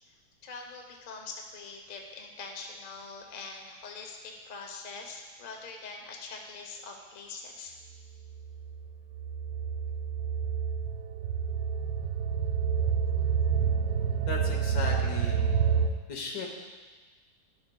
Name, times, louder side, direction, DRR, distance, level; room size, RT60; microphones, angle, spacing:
voice 1, 0.4-7.8, left 4 dB, 50° left, 1 dB, 0.6 m, -43 dB
sound 1, 8.3-15.9, right 7 dB, 70° right, 0.9 m, -29 dB
voice 2, 14.3-15.5 16.1-16.5, left 3 dB, 65° left, 1 dB, 1.5 m, -36 dB
11.0 x 7.8 x 2.2 m, 1.3 s
omnidirectional pair, 2.0 m